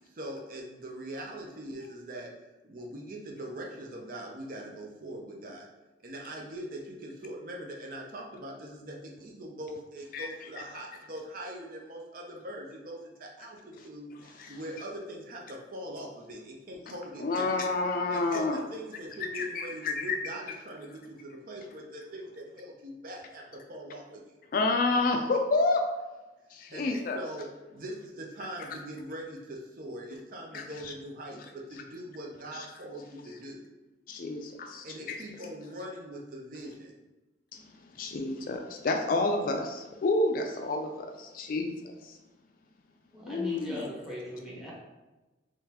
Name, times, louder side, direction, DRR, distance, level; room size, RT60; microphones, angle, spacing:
voice 1, 0.0-5.7 6.0-17.6 18.1-24.2 26.7-26.9 27.1-33.6 34.8-36.9, right 1 dB, 50° right, -1 dB, 0.5 m, -42 dB
voice 2, 17.2-18.6 19.3-20.2 24.5-26.0 26.5-27.2 30.5-30.9 34.1-35.2 37.5-37.6 38.0-41.7 42.0-42.1 43.2-43.8, left 3 dB, 50° left, 4 dB, 0.3 m, -29 dB
voice 3, 43.1-44.7, left 1 dB, 5° right, -5 dB, 1.0 m, -39 dB
3.9 x 3.1 x 2.8 m, 1.1 s
head